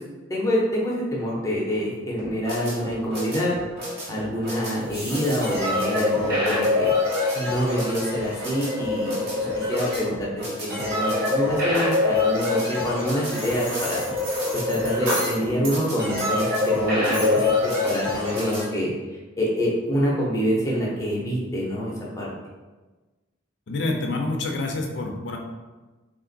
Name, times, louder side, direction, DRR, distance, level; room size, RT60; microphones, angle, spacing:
voice 1, 0.3-3.6 4.1-6.9 7.3-14.0 14.7-18.9 19.4-22.3, equal, 15° left, -5 dB, 0.8 m, -26 dB
sound 1, 2.2-18.6, left 2 dB, 50° right, 1.1 m, -25 dB
sound 2, 4.8-6.1, right 1 dB, 30° right, 1.5 m, -40 dB
sound 3, 13.3-15.8 16.2-16.8 17.1-17.5, right 1 dB, 80° right, 1.3 m, -33 dB
voice 2, 23.7-25.4, left 2 dB, 55° left, 2 dB, 0.5 m, -27 dB
3.6 x 2.5 x 3.9 m, 1.2 s
head